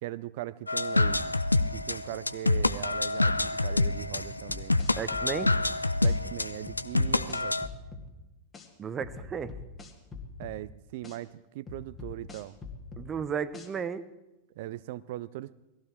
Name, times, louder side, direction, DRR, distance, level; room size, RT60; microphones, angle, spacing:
voice 1, 0.0-1.4 1.7-4.8 6.0-7.6 10.4-12.5 14.6-15.5, right 15 dB, 50° right, 17 dB, 0.5 m, -39 dB
sound 1, 0.7-7.7, left 2 dB, 85° left, 0.5 m, -27 dB
sound 2, 4.2-5.6 6.0-6.2 6.7-8.1 8.5-8.7 9.0-10.6 11.0-11.2 11.7-13.1 13.5-13.7, left 4 dB, 20° left, 2.3 m, -43 dB
voice 2, 5.0-5.5 8.8-9.5 13.0-14.1, right 7 dB, 25° right, 14 dB, 0.9 m, -34 dB
20.0 x 15.0 x 4.6 m, 0.97 s
figure-of-eight pair, 90°, 0 cm